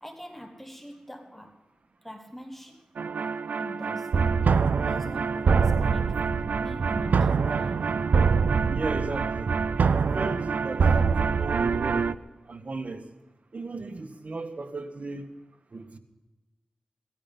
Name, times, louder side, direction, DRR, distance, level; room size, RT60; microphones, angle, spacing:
voice 1, 0.0-1.7 2.0-4.2 4.8-8.0, equal, 5° left, 1.3 m, -43 dB
sound 1, 3.0-12.1, right 5 dB, 85° right, 0.5 m, -24 dB
voice 2, 8.7-9.5 9.9-12.1 12.5-13.1 13.5-15.3 15.7-16.0, right 3 dB, 60° right, 1.7 m, -35 dB
17.5 x 13.5 x 5.5 m
cardioid pair, 55°, 3 cm